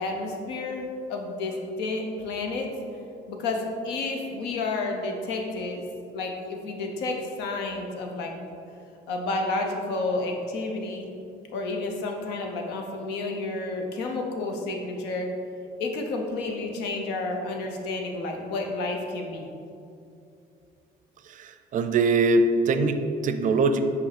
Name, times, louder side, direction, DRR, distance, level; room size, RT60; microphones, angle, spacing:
voice 1, 0.0-2.7 3.3-5.8 6.1-8.5 9.1-11.1 11.5-15.3 15.8-19.5, left 2 dB, 85° left, 2 dB, 0.9 m, -30 dB
voice 2, 21.3-23.8, right 3 dB, 50° right, 8 dB, 0.5 m, -23 dB
5.9 x 4.5 x 4.1 m, 2.6 s
cardioid pair, 110°, 17 cm